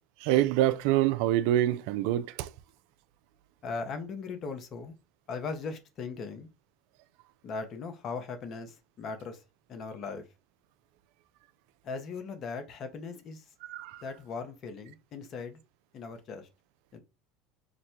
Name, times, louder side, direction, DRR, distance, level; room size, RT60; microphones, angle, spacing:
voice 1, 0.2-2.5 13.7-14.0, right 13 dB, 70° right, 0.4 m, -26 dB
voice 2, 3.6-4.9 5.3-6.5 7.4-9.4 9.7-10.2 11.8-13.4 14.0-15.6 15.9-16.5 16.9-17.0, left 4 dB, 45° left, 0.9 m, -38 dB
6.1 x 2.2 x 2.8 m
hypercardioid pair, 85°, 0 cm